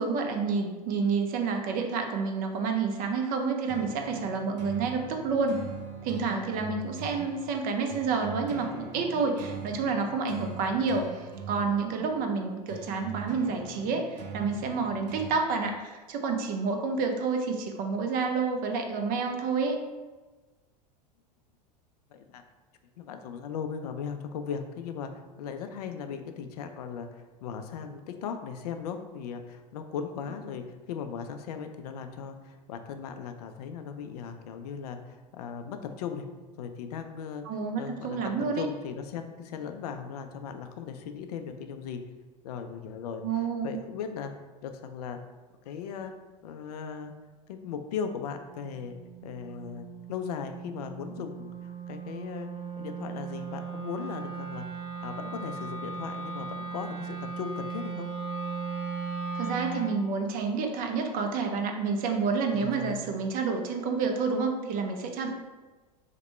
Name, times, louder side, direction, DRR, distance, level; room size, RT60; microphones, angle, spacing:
voice 1, 0.0-5.6 6.0-19.8 37.5-38.7 43.2-43.8 59.3-65.3, right 4 dB, 45° right, 4 dB, 0.6 m, -29 dB
sound 1, 3.7-15.3, right 6 dB, 85° right, 0.6 m, -42 dB
voice 2, 22.1-22.4 23.0-25.1 25.4-36.3 36.6-37.4 37.8-42.0 42.4-44.3 44.6-45.2 45.7-46.1 46.4-47.1 47.5-48.9 49.2-51.5 51.9-52.5 52.8-54.7 55.0-58.1 62.5-63.0, left 7 dB, 70° left, 7 dB, 0.4 m, -38 dB
Wind instrument woodwind instrument, 48.4-60.0, right 5 dB, 20° right, 1.2 m, -37 dB
2.9 x 2.1 x 4.1 m, 1.2 s
hypercardioid pair, 90°, 21 cm